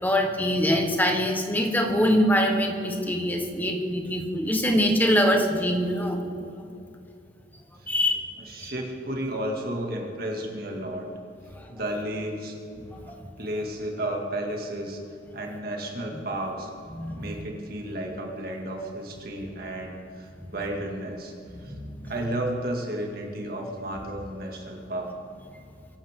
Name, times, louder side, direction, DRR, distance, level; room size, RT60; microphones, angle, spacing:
voice 1, 0.0-6.2 7.9-8.2 8.6-8.7 11.6-11.7 12.9-13.0 16.9-17.3 21.5-22.1, equal, 10° left, 4 dB, 1.3 m, -24 dB
voice 2, 8.4-11.1 11.7-13.1 13.4-15.0 15.3-16.7 17.1-21.3 21.6-21.7 22.0-25.1, right 1 dB, 50° right, 1 dB, 2.3 m, -33 dB
23.0 x 11.5 x 3.8 m, 2.6 s
head